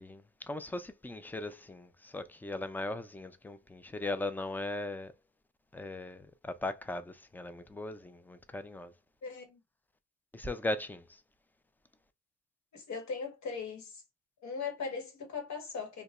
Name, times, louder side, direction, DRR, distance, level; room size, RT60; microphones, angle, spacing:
voice 1, 0.0-5.1 5.7-8.9 10.3-11.0, left 2 dB, 5° left, 0.4 m, -38 dB
voice 2, 9.2-9.6 12.7-14.0 14.4-16.0, left 5 dB, 65° left, 1.5 m, -39 dB
2.9 x 2.2 x 4.1 m
cardioid pair, 90°, 30 cm